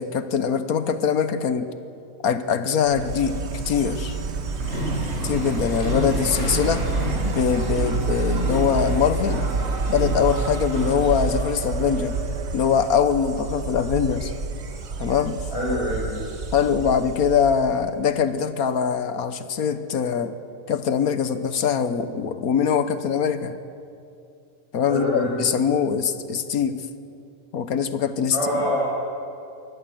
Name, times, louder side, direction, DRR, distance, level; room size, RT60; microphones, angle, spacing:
voice 1, 0.0-1.7 2.2-3.4 3.6-4.2 5.2-6.9 7.2-9.5 9.9-12.2 12.5-14.3 15.0-15.4 16.5-20.3 20.7-23.6 24.7-26.8 27.5-28.6, left 7 dB, 80° left, 11 dB, 1.5 m, -23 dB
Insect, 2.9-18.0, right 4 dB, 50° right, 1.4 m, -28 dB
sound 1, 4.6-11.3, left 1 dB, 50° left, 8.5 m, -31 dB
voice 2, 15.5-16.1 24.9-25.4 28.3-28.9, equal, 20° left, -5 dB, 4.7 m, -25 dB
23.0 x 17.5 x 7.8 m, 2.6 s
omnidirectional pair, 1.5 m